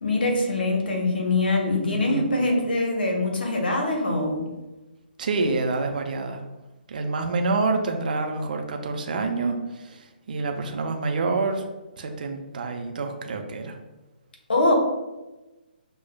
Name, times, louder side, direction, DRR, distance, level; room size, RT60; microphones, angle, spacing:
voice 1, 0.0-4.4 14.5-14.7, left 2 dB, 70° left, 1 dB, 1.0 m, -23 dB
voice 2, 1.7-2.3 5.2-6.4 6.9-11.6 12.0-13.8, right 3 dB, 55° right, 4 dB, 0.6 m, -27 dB
6.2 x 2.3 x 2.2 m, 1.1 s
figure-of-eight pair, 135°, 5 cm